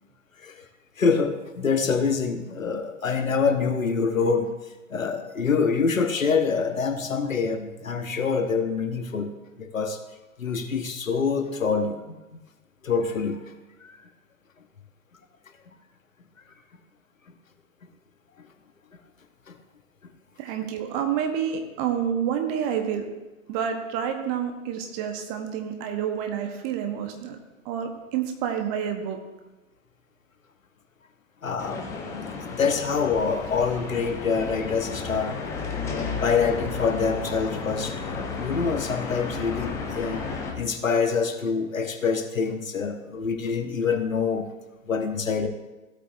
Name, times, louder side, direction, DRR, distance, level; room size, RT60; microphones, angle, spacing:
voice 1, 1.0-4.5 4.9-9.3 9.6-10.0 10.4-12.0 12.8-13.5 13.8-14.0 19.5-19.6 31.4-31.8 32.1-35.4 35.9-40.2 40.5-44.5 44.8-45.5, left 5 dB, 70° left, 6 dB, 1.3 m, -26 dB
voice 2, 20.4-23.1 23.5-27.4 27.6-29.2, right 8 dB, 25° right, 5 dB, 1.1 m, -28 dB
sound 1, 31.6-40.5, left 4 dB, 5° left, 0.5 m, -33 dB
15.5 x 8.3 x 2.6 m, 1.1 s
figure-of-eight pair, 115°, 41 cm